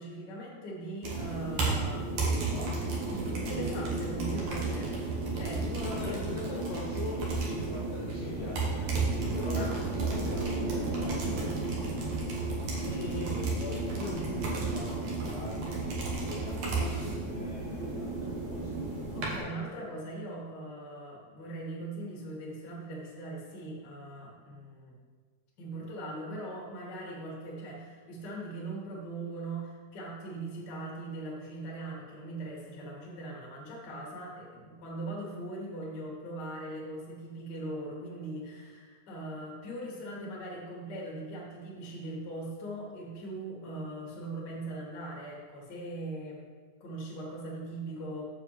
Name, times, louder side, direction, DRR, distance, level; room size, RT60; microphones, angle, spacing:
voice 1, 0.0-4.9 5.3-6.3 9.5-9.7 12.8-13.4 19.1-24.9 25.6-46.5 46.8-48.3, right 1 dB, 40° left, -4 dB, 1.5 m, -40 dB
sound 1, 1.0-19.4, right 3 dB, 65° right, 1.8 m, -32 dB
voice 2, 5.7-8.9 9.3-11.9 13.0-15.9 16.2-18.9, left 3 dB, 70° left, -4 dB, 2.1 m, -42 dB
7.0 x 5.0 x 6.7 m, 1.5 s
omnidirectional pair, 5.2 m